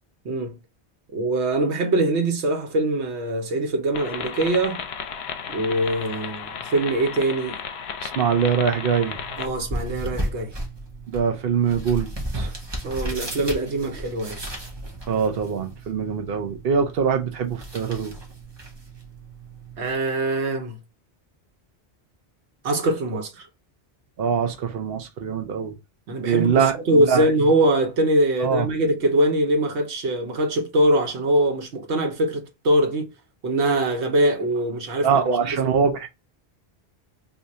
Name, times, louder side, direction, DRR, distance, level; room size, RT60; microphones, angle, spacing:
voice 1, 0.2-0.6 1.1-4.8 5.5-7.6 9.4-10.5 12.8-14.4 19.8-20.8 22.6-23.5 26.1-33.1 33.4-35.7, right 1 dB, 90° right, 1.2 m, -23 dB
sound 1, 3.9-9.5, left 7 dB, 75° left, 0.8 m, -34 dB
voice 2, 8.0-9.2 11.1-12.1 12.3-12.5 15.1-18.1 24.2-25.8 26.2-27.3 28.4-28.7 35.0-36.1, right 6 dB, 65° right, 0.9 m, -23 dB
sound 2, 8.9-19.9, right 1 dB, 25° right, 0.8 m, -35 dB
2.7 x 2.5 x 4.2 m
omnidirectional pair, 1.1 m